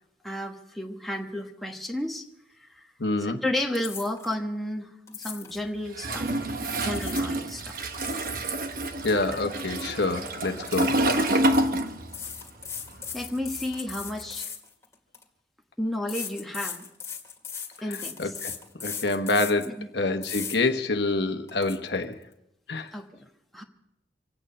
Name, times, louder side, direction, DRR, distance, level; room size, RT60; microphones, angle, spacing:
voice 1, 0.2-2.3 2.5-2.9 3.2-6.4 6.8-7.8 11.6-11.9 13.1-14.5 15.8-16.9 17.8-18.3 19.6-19.9 22.9-23.6, left 1 dB, ahead, 1.2 m, -33 dB
voice 2, 3.0-3.4 9.0-11.0 18.2-18.5 18.8-22.2 22.7-22.9, left 2 dB, 70° left, 1.2 m, -27 dB
sound 1, 3.7-4.3 5.1-5.6 6.7-7.3 7.7-9.5 9.8-10.1 10.7-11.3 12.1-15.2 16.1-19.7 20.2-20.6 21.0-21.1 21.5-21.8, left 6 dB, 15° left, 1.9 m, -38 dB
Toilet flush, 6.0-12.4 12.7-14.3, right 1 dB, 50° right, 1.1 m, -28 dB
26.0 x 9.1 x 5.5 m
head